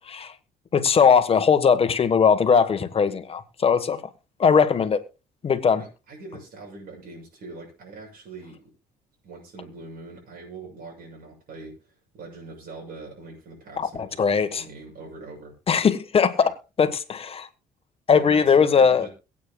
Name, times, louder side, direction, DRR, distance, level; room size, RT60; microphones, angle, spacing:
voice 1, 0.7-4.0 4.4-5.0 5.4-5.8 13.8-14.6 15.7-16.5 16.8-17.5 18.1-19.1, left 6 dB, 35° left, 1.2 m, -20 dB
voice 2, 5.8-8.6 9.2-15.6 16.4-16.5 18.1-19.1, right 3 dB, 60° right, 6.9 m, -42 dB
22.5 x 8.7 x 2.3 m
cardioid pair, 110°, 17 cm